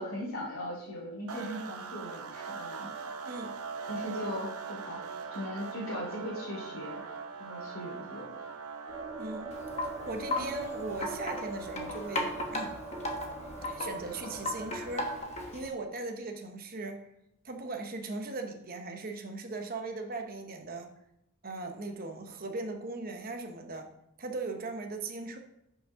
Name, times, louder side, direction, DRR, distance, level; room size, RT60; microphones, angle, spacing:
voice 1, 0.0-2.9 3.9-5.0 5.3-7.0 7.4-8.3, equal, 65° left, -4 dB, 2.8 m, -38 dB
sound 1, 1.3-15.5, right 5 dB, 80° right, 0.7 m, -42 dB
voice 2, 3.2-3.6 9.2-9.6 9.8-12.8 13.7-15.2 15.5-17.1 17.4-20.9 21.4-23.9 24.2-25.4, right 3 dB, 40° right, 5 dB, 0.9 m, -39 dB
sound 2, 8.9-15.2, right 2 dB, 15° right, 0.6 m, -43 dB
Wind chime, 9.5-15.7, left 1 dB, 30° left, 1.1 m, -37 dB
5.9 x 5.3 x 5.6 m, 0.84 s
head